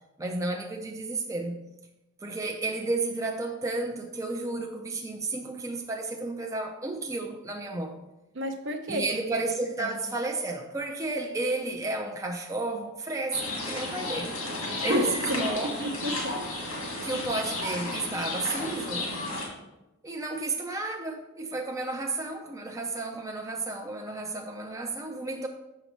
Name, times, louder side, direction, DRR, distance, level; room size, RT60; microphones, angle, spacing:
voice 1, 0.2-1.6 2.2-8.0 8.9-14.4 14.8-15.7 17.0-19.1 20.0-25.5, right 2 dB, 15° right, 0.4 m, -32 dB
voice 2, 8.3-9.1 9.8-9.9 14.7-16.4 16.9-17.0, equal, 60° right, 0.7 m, -31 dB
sound 1, 13.3-19.5, left 2 dB, 90° left, 1.9 m, -33 dB
6.5 x 6.0 x 3.1 m
head